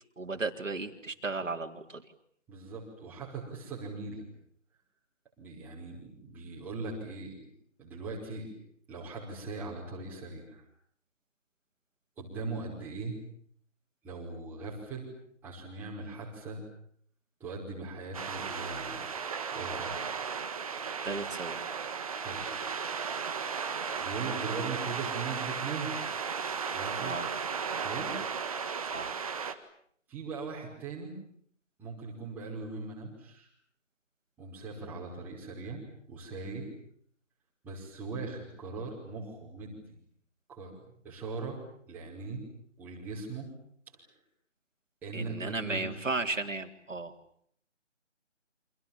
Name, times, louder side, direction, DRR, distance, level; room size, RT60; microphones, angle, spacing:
voice 1, 0.2-2.1 21.0-21.6 27.0-27.3 28.9-29.1 45.1-47.1, right 3 dB, 90° right, 4 dB, 3.8 m, -35 dB
voice 2, 2.5-4.2 5.4-7.5 7.8-8.5 8.9-10.6 12.2-13.2 14.0-15.1 15.4-16.6 17.4-19.0 19.5-20.0 22.1-22.5 24.0-25.9 26.7-27.2 27.8-28.3 30.1-31.2 31.8-33.5 34.4-36.7 37.6-39.9 40.5-40.7 41.0-41.6 41.9-42.4 42.8-43.5 45.0-46.1, right 3 dB, 5° right, -5 dB, 5.2 m, -40 dB
sound 1, 18.1-29.5, right 6 dB, 30° right, 1.8 m, -35 dB
30.0 x 26.5 x 7.4 m, 0.64 s
figure-of-eight pair, 170°, 37 cm